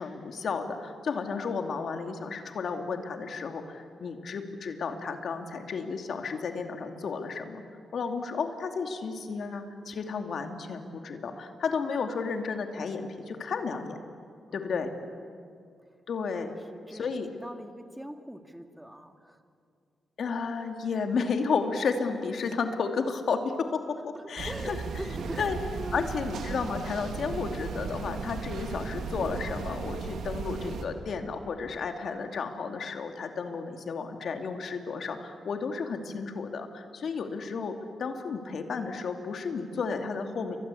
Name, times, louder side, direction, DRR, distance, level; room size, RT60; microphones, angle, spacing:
voice 1, 0.0-7.6 7.9-14.0 14.5-14.9 16.1-16.6 17.0-17.3 20.2-24.8 25.4-25.6 25.9-40.6, left 5 dB, 65° left, 5 dB, 2.6 m, -32 dB
voice 2, 14.5-15.4 15.9-16.0 16.4-17.1 17.3-19.4 24.1-26.2, equal, 5° right, 6 dB, 2.3 m, -43 dB
sound 1, 24.4-30.9, right 5 dB, 80° right, 2.6 m, -36 dB
29.5 x 24.0 x 8.5 m, 2.3 s
cardioid pair, 85°, 0 cm